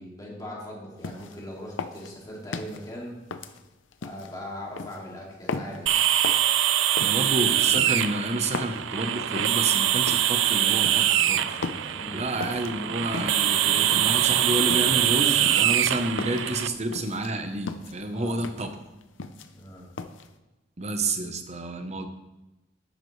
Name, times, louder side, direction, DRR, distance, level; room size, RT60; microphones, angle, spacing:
voice 1, 0.0-3.2 4.0-6.0 11.9-12.3 18.1-18.4 19.5-19.9, left 1 dB, 20° left, -3 dB, 2.4 m, -40 dB
sound 1, 1.0-1.4 1.8-2.8 3.3-4.3 4.8-5.0 5.5-5.8 6.2-6.5 7.0-7.2 7.7-8.8 9.4-9.6 10.1-10.4 10.8-11.2 11.6-12.0 12.4-12.7 13.1-13.5 13.9-14.3 14.7-15.0 15.5-16.5 16.9-17.3 17.7-18.0 18.4-18.7 19.0-19.7 20.0-20.3, left 4 dB, 90° left, 0.6 m, -36 dB
sound 2, 5.9-16.7, right 11 dB, 80° right, 0.4 m, -23 dB
voice 2, 7.0-11.6 12.1-18.7 20.8-22.1, right 2 dB, 35° right, 7 dB, 0.9 m, -30 dB
sound 3, 9.2-18.2, equal, 20° right, 3.2 m, -44 dB
11.5 x 9.2 x 3.3 m, 1.0 s
head